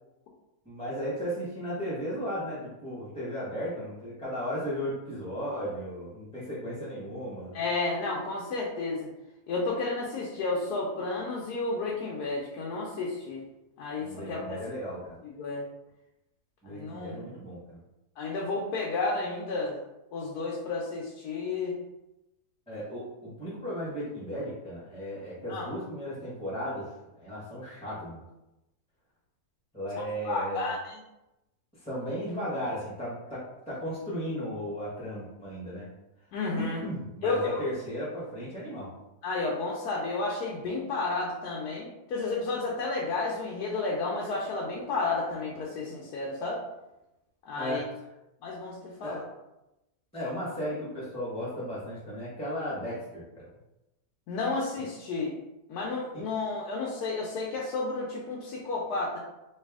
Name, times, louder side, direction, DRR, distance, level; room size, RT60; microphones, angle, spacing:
voice 1, 0.6-7.6 14.0-15.2 16.6-17.8 22.7-28.2 29.7-30.7 31.8-35.9 36.6-38.9 47.5-47.8 49.0-49.1 50.1-53.5, equal, 5° left, -8 dB, 0.9 m, -35 dB
voice 2, 7.5-9.1 9.5-13.4 13.8-14.6 15.2-15.6 16.7-17.2 18.2-19.8 20.1-21.8 25.5-25.7 30.2-30.9 36.3-36.8 37.2-37.6 39.2-46.6 47.4-47.8 48.4-49.2 54.3-55.3 55.7-59.2, left 3 dB, 80° left, -3 dB, 1.2 m, -32 dB
3.3 x 2.7 x 3.5 m, 0.95 s
omnidirectional pair, 1.7 m